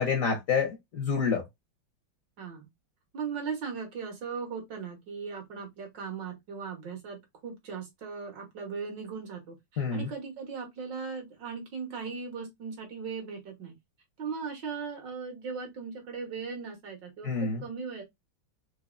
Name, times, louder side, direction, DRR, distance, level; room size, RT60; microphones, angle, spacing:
voice 1, 0.0-1.4 9.8-10.1 17.2-17.6, left 5 dB, 50° left, 1.1 m, -28 dB
voice 2, 2.4-2.7 3.1-13.7 14.2-18.0, right 5 dB, 60° right, 1.9 m, -38 dB
4.6 x 2.7 x 2.5 m
omnidirectional pair, 2.3 m